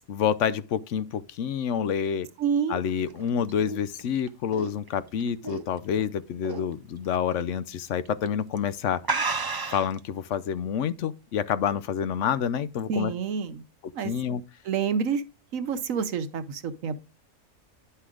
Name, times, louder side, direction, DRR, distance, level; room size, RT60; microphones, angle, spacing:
voice 1, 0.1-2.3 2.7-9.0 9.7-13.1 14.0-14.4, left 8 dB, 70° left, 1.0 m, -28 dB
voice 2, 2.4-2.8 12.9-13.6 13.9-14.1 14.6-15.2 15.5-17.0, right 6 dB, 90° right, 1.3 m, -28 dB
sound 1, 2.9-6.0 6.4-6.7 7.1-7.2 8.0-8.3 8.6-8.7 9.0-10.0, right 3 dB, 30° right, 0.5 m, -31 dB
9.9 x 5.6 x 3.6 m
omnidirectional pair, 1.3 m